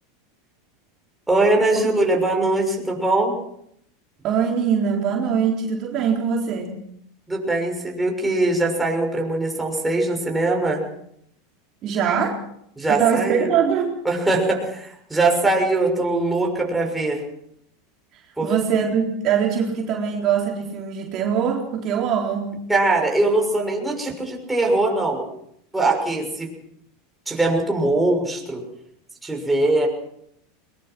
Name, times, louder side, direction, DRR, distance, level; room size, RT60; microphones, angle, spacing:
voice 1, 1.3-3.4 7.3-10.8 12.8-13.5 14.0-17.2 18.4-18.5 22.7-25.3 25.7-26.5 27.3-28.6 29.2-29.9, right 2 dB, 5° right, 0 dB, 6.2 m, -21 dB
voice 2, 4.2-6.8 11.8-12.4 12.9-14.0 18.1-22.6, right 7 dB, 40° right, 0 dB, 3.8 m, -22 dB
21.5 x 21.0 x 6.1 m, 0.72 s
supercardioid pair, 130°, 0 cm